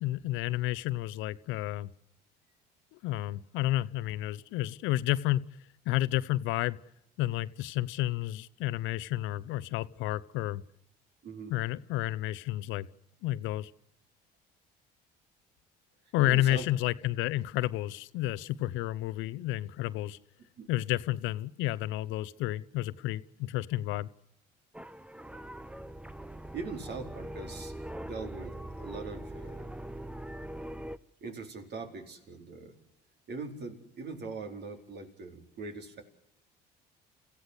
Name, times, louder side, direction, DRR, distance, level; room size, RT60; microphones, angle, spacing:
voice 1, 0.0-1.9 2.9-5.4 5.9-6.8 7.2-10.6 11.5-12.9 13.2-13.7 16.1-20.2 20.7-24.1, left 15 dB, 70° left, 17 dB, 0.8 m, -31 dB
voice 2, 11.2-11.6 16.2-16.7 20.6-20.7 26.5-27.8 28.0-29.7 31.2-32.8 33.3-36.0, right 4 dB, 55° right, 4 dB, 4.5 m, -42 dB
sound 1, 24.7-31.0, right 1 dB, 5° right, 0.9 m, -42 dB
29.5 x 15.0 x 8.2 m, 0.82 s
hypercardioid pair, 65°, 21 cm